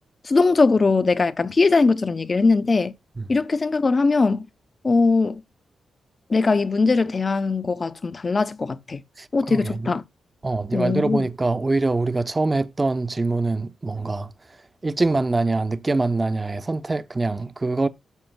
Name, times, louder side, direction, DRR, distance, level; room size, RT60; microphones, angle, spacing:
voice 1, 0.2-2.9 3.3-4.5 4.8-5.4 6.3-9.0 9.3-10.0 10.7-11.3, left 3 dB, 40° left, 0.8 m, -20 dB
voice 2, 9.2-9.9 10.4-14.3 14.8-17.9, right 3 dB, 30° right, 0.8 m, -24 dB
13.0 x 7.1 x 2.3 m
supercardioid pair, 50°, 0 cm